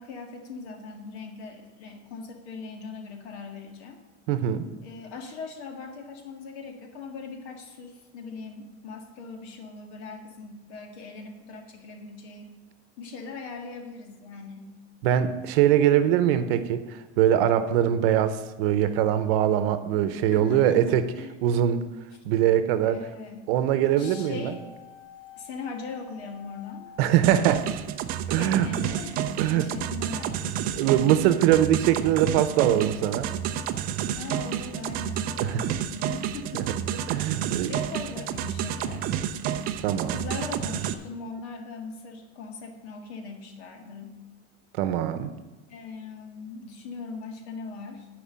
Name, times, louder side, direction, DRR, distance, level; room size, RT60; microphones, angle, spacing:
voice 1, 0.0-4.0 4.8-12.5 13.0-14.8 20.1-21.7 22.8-23.5 24.0-24.6 25.4-26.9 27.3-27.4 28.4-30.6 34.1-36.7 37.7-39.1 40.1-44.2 45.7-48.1, left 4 dB, 75° left, 4 dB, 1.9 m, -40 dB
voice 2, 4.3-4.6 15.0-16.8 17.2-21.0 21.4-21.8 22.2-23.0 23.5-24.6 27.0-27.6 28.3-28.7 29.4-29.7 30.8-33.3 35.4-35.6 36.5-36.6 37.1-37.7 39.8-40.2 44.8-45.3, right 11 dB, 60° right, 11 dB, 0.8 m, -22 dB
sound 1, 24.0-28.1 28.3-28.4, left 7 dB, 35° left, 3.2 m, -49 dB
sound 2, 27.2-40.9, right 9 dB, 30° right, 0.4 m, -30 dB
10.5 x 5.0 x 7.5 m, 1.2 s
supercardioid pair, 165°, 33 cm